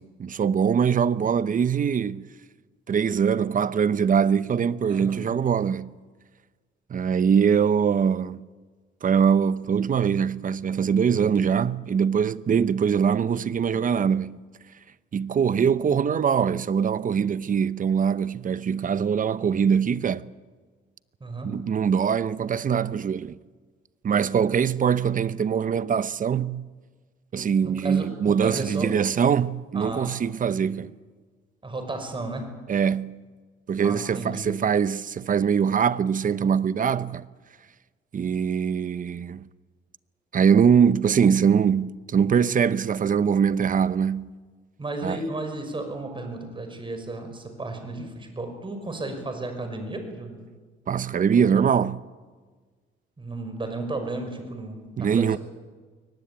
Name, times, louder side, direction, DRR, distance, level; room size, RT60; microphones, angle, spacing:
voice 1, 0.0-2.3 2.9-5.9 6.9-8.4 9.0-14.4 15.1-20.2 21.4-23.4 24.0-26.6 27.3-30.9 32.7-33.2 33.7-37.2 38.1-39.5 40.3-44.3 45.0-45.2 50.9-52.0 55.0-55.4, right 7 dB, 40° right, 0.9 m, -23 dB
voice 2, 4.9-5.2 21.2-21.5 27.6-28.9 29.7-30.1 30.5-30.7 31.6-32.5 33.8-34.6 44.8-50.4 51.4-51.6 53.2-55.4, right 2 dB, 25° right, 6.0 m, -34 dB
23.0 x 19.0 x 8.6 m
cardioid pair, 90°, 20 cm